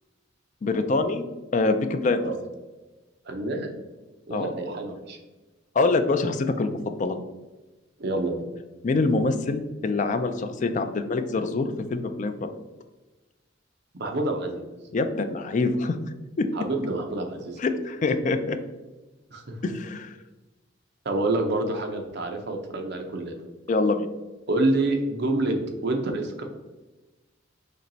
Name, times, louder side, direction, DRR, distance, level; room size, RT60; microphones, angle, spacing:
voice 1, 0.6-1.2 1.5-2.2 4.3-4.5 5.7-6.7 7.0-7.2 8.8-12.5 14.9-16.0 16.4-16.5 17.6-18.6 19.6-20.2 23.7-24.1, left 3 dB, 40° left, 8 dB, 0.4 m, -25 dB
voice 2, 3.2-3.8 4.3-5.2 8.0-8.5 13.9-14.6 16.5-17.6 19.3-19.6 21.0-23.4 24.5-25.6 25.8-26.4, right 2 dB, 60° right, 4 dB, 0.7 m, -27 dB
4.4 x 3.1 x 3.9 m, 1.1 s
head